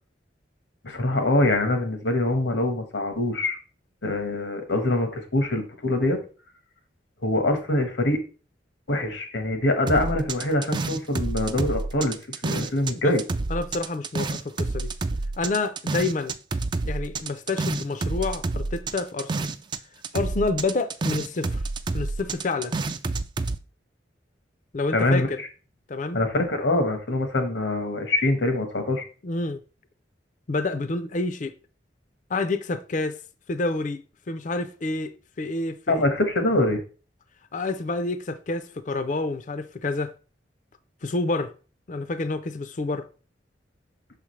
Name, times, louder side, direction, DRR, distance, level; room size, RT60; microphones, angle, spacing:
voice 1, 0.8-3.6 4.0-6.2 7.2-8.2 8.9-12.2 12.4-13.2 24.9-25.3 26.1-29.0 35.9-36.8, left 1 dB, 90° left, 1.4 m, -24 dB
sound 1, 9.9-12.9 13.2-19.8 20.0-23.6, right 3 dB, 25° right, 0.3 m, -28 dB
voice 2, 13.5-14.9 15.4-16.4 16.9-19.5 20.1-21.6 21.9-22.7 24.7-25.4 25.9-26.2 29.2-29.6 30.5-31.5 32.3-33.2 33.5-34.0 34.3-36.0 37.5-40.1 41.0-41.5 41.9-43.1, left 3 dB, 45° left, 0.5 m, -28 dB
6.1 x 4.9 x 3.2 m
head